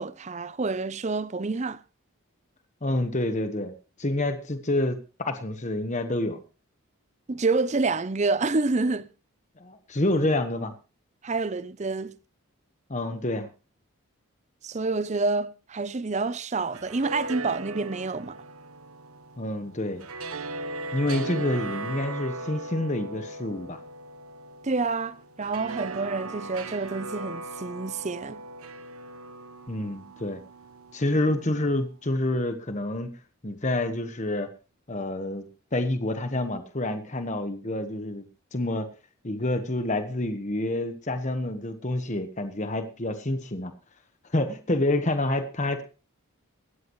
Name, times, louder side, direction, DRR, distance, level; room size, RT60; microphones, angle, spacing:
voice 1, 0.0-1.8 7.3-9.1 11.2-12.1 14.6-18.4 24.6-28.4, right 3 dB, 30° right, 0.6 m, -28 dB
voice 2, 2.8-3.7 4.0-6.4 9.6-10.7 12.9-13.5 19.4-20.0 20.9-23.8 29.7-30.4 30.9-33.1 33.4-34.5 34.9-35.5 35.7-38.3 38.5-38.9 39.2-43.7 44.3-45.8, left 1 dB, 35° left, 1.2 m, -28 dB
sound 1, 16.6-31.7, right 2 dB, 85° right, 1.2 m, -38 dB
18.0 x 13.5 x 3.1 m
head